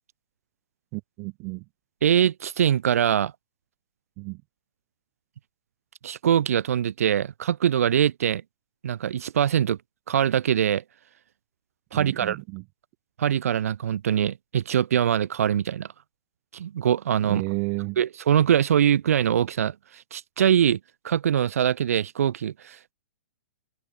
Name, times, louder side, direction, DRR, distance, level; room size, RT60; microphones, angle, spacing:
voice 1, 0.9-1.6 4.2-4.4 11.9-12.6 17.3-18.0, right 32 dB, 35° right, 1.7 m, -32 dB
voice 2, 2.0-3.3 6.0-8.4 8.8-9.8 10.1-10.8 11.9-12.4 13.2-15.9 16.5-17.4 18.0-19.7 20.1-20.8 21.0-22.9, right 9 dB, 70° right, 2.1 m, -23 dB
hypercardioid pair, 145°, 8 cm